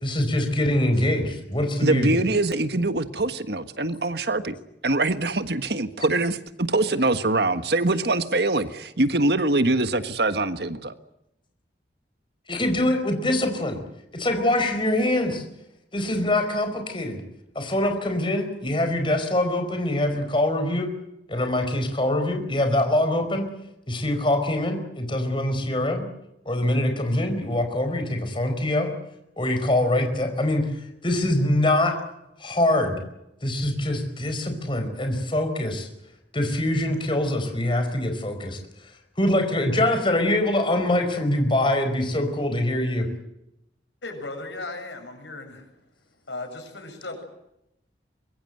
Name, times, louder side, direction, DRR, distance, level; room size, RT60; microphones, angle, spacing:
voice 1, 0.0-2.1 12.5-13.8 14.1-15.4 15.9-17.2 17.5-20.9 21.3-23.5 23.9-26.1 26.4-28.9 29.4-30.7 31.0-32.0 32.4-33.0 33.4-35.9 36.3-38.6 39.2-43.1, left 1 dB, 30° left, 6 dB, 4.7 m, -24 dB
voice 2, 1.8-4.5 4.8-10.9, right 2 dB, 65° right, 10 dB, 1.6 m, -23 dB
voice 3, 44.0-45.7 46.3-47.2, left 2 dB, 85° left, 5 dB, 7.6 m, -36 dB
24.5 x 22.0 x 8.0 m, 0.85 s
head